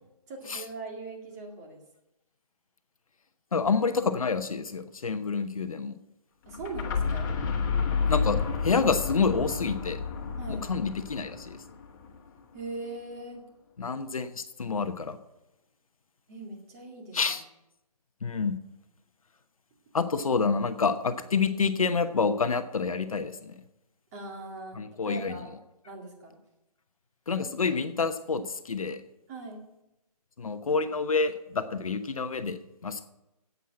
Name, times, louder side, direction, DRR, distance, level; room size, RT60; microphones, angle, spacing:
voice 1, 0.3-1.8 6.5-7.3 10.4-10.7 12.5-13.4 16.3-17.2 24.1-25.5 25.9-26.3 29.3-29.6, right 2 dB, 25° right, 1 dB, 2.2 m, -40 dB
voice 2, 3.5-5.9 8.1-10.0 10.5-11.6 13.8-15.2 17.1-17.4 18.2-18.6 19.9-23.6 24.7-25.4 27.3-29.0 30.4-33.1, left 5 dB, 60° left, 9 dB, 1.0 m, -28 dB
sound 1, 6.5-12.3, left 5 dB, 30° left, 1.7 m, -30 dB
10.0 x 8.2 x 7.6 m, 0.92 s
figure-of-eight pair, 150°, 20 cm